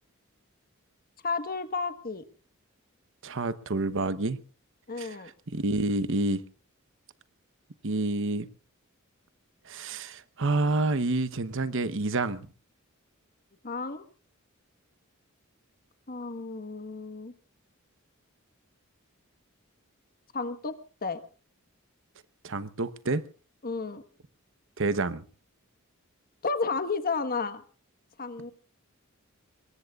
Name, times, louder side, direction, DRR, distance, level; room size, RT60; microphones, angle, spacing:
voice 1, 1.2-2.2 4.9-5.3 13.6-14.0 16.1-17.3 20.3-21.2 23.6-24.0 26.4-27.6 28.2-28.5, left 4 dB, 45° left, 1.4 m, -32 dB
voice 2, 3.2-4.4 5.0-5.2 5.5-6.4 7.8-8.5 9.7-12.5 22.4-23.2 24.8-25.2, right 2 dB, 65° right, 1.0 m, -28 dB
24.5 x 21.5 x 2.4 m
head